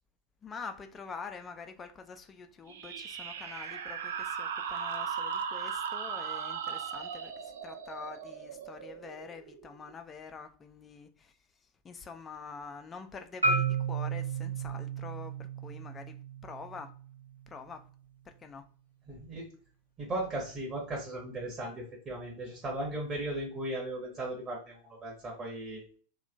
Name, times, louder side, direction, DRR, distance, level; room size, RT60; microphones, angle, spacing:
voice 1, 0.4-11.4 11.8-16.9 17.5-17.9 18.2-18.6, left 5 dB, 20° left, 0.4 m, -46 dB
sound 1, 2.7-9.9, right 7 dB, 60° right, 0.4 m, -38 dB
Marimba xylophone, 13.4-17.6, right 4 dB, 80° right, 0.7 m, -33 dB
voice 2, 19.1-19.4 20.0-25.8, right 1 dB, 25° right, 1.0 m, -37 dB
2.8 x 2.2 x 2.6 m
figure-of-eight pair, 90°, 0 cm